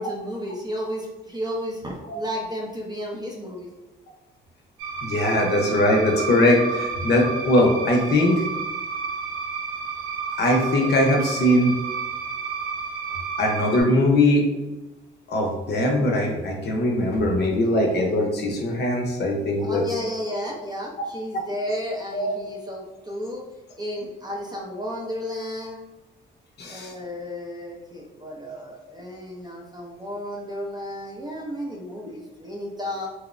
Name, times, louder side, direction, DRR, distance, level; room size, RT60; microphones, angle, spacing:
voice 1, 0.0-3.7 19.6-23.5 23.8-25.8 26.7-33.1, equal, 20° right, -2 dB, 0.4 m, -33 dB
sound 1, 4.8-13.8, right 5 dB, 90° right, 0.9 m, -31 dB
voice 2, 5.0-8.4 10.4-11.8 13.4-14.5 15.3-19.8 22.1-22.3 26.6-26.9, left 1 dB, 55° left, 1 dB, 0.6 m, -21 dB
2.9 x 2.0 x 2.4 m, 1.1 s
cardioid pair, 90°, 20 cm